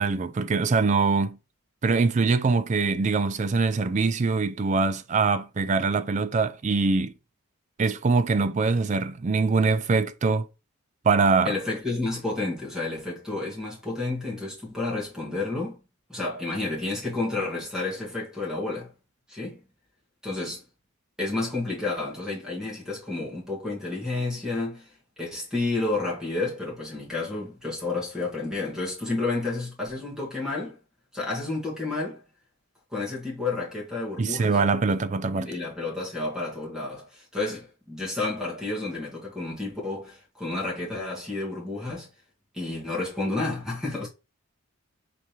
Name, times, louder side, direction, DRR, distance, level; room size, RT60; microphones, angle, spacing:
voice 1, 0.0-1.4 1.8-7.1 7.8-10.5 11.0-11.5 34.2-35.5, right 4 dB, 35° right, 0.3 m, -23 dB
voice 2, 11.4-15.8 16.1-18.9 19.3-19.6 20.2-20.6 21.2-24.9 25.2-30.8 31.1-32.2 32.9-34.6 35.3-42.1 42.5-44.1, left 3 dB, 5° right, 1.6 m, -30 dB
5.0 x 3.4 x 2.9 m
head